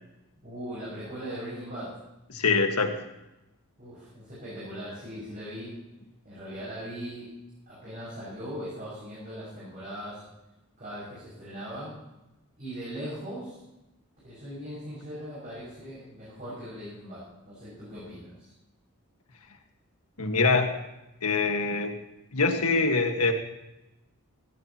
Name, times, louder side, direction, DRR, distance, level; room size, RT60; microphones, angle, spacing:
voice 1, 0.4-1.9 3.8-5.7 6.2-7.3 7.7-10.2 10.8-11.9 12.6-13.6 14.2-18.3, equal, 40° right, -9 dB, 6.3 m, -39 dB
voice 2, 2.3-3.0 20.2-20.8 21.2-21.9 22.3-23.3, left 4 dB, 90° left, 4 dB, 1.7 m, -24 dB
16.5 x 16.0 x 3.0 m, 0.95 s
head